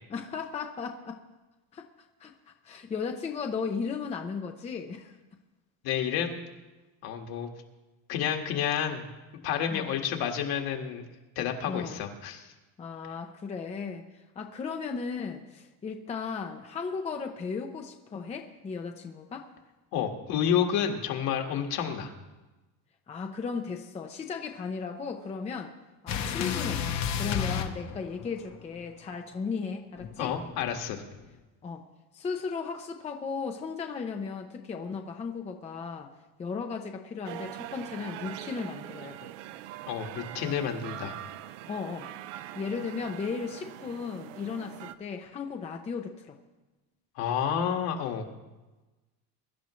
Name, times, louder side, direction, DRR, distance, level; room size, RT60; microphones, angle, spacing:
voice 1, 0.1-1.2 1.7-1.9 2.2-5.1 9.7-9.9 11.7-12.0 12.8-19.5 23.1-25.7 26.0-26.8 27.2-30.3 31.6-31.8 32.1-36.1 36.4-39.3 41.7-42.1 42.5-46.4, left 5 dB, 15° left, 4 dB, 0.6 m, -36 dB
voice 2, 5.8-6.4 7.0-7.5 8.1-9.1 9.4-11.0 11.4-12.5 19.9-22.1 30.2-31.0 39.9-41.2 47.2-48.3, left 8 dB, 60° left, 3 dB, 1.8 m, -30 dB
sound 1, 26.1-28.6 30.0-31.3, left 8 dB, 40° left, 0.9 m, -32 dB
sound 2, 37.2-44.9, right 13 dB, 90° right, 0.8 m, -42 dB
22.5 x 12.0 x 3.1 m, 1.1 s
cardioid pair, 175°, 42 cm